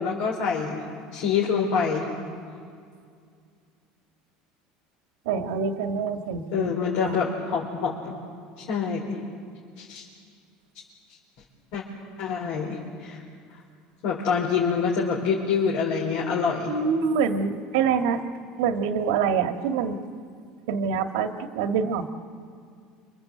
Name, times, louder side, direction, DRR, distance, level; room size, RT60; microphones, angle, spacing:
voice 1, 0.0-2.1 6.5-8.1 8.6-9.2 9.8-10.0 11.7-11.8 12.2-13.2 14.0-16.7, left 6 dB, 75° left, -2 dB, 4.6 m, -26 dB
voice 2, 5.3-6.7 7.0-7.2 16.7-18.2 18.6-20.0 20.7-22.1, right 6 dB, 85° right, 6 dB, 1.8 m, -25 dB
29.0 x 26.0 x 7.9 m, 2.3 s
supercardioid pair, 125°, 3 cm